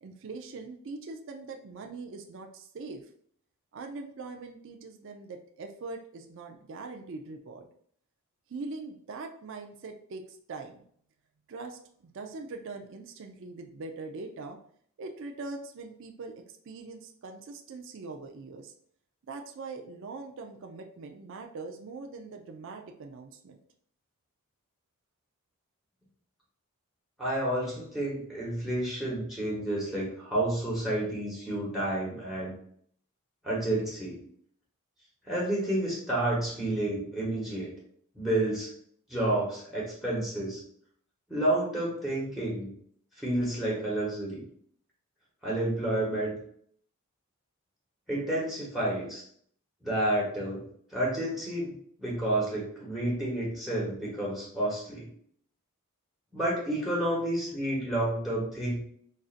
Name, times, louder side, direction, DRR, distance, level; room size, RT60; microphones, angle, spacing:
voice 1, 0.0-3.1 3.7-7.7 8.5-10.8 11.5-14.6 15.0-16.3 16.6-18.7 19.3-23.6, right 3 dB, 55° right, 3 dB, 0.4 m, -42 dB
voice 2, 27.2-32.5 33.4-34.2 35.3-37.7 38.1-38.7 39.1-40.6 41.3-42.7 43.2-44.4 45.4-46.4 48.1-49.2 49.8-50.6 50.9-55.1 56.3-58.8, right 1 dB, ahead, -5 dB, 1.0 m, -30 dB
5.2 x 2.5 x 2.4 m, 0.63 s
head